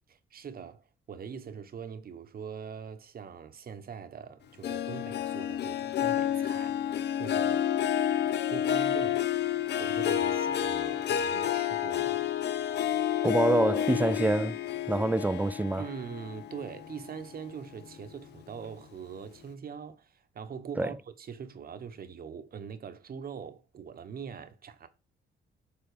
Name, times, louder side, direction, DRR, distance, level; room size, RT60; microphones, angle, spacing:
voice 1, 0.1-7.7 8.5-9.3 9.8-12.3 15.8-24.9, right 7 dB, 50° right, 1.0 m, -42 dB
Harp, 4.6-17.4 17.8-18.2 18.7-18.8, left 10 dB, 60° left, 0.5 m, -30 dB
voice 2, 13.2-14.6 14.9-15.9 20.8-20.9, right 2 dB, 10° right, 0.3 m, -26 dB
7.0 x 3.6 x 4.8 m
cardioid pair, 90°, 20 cm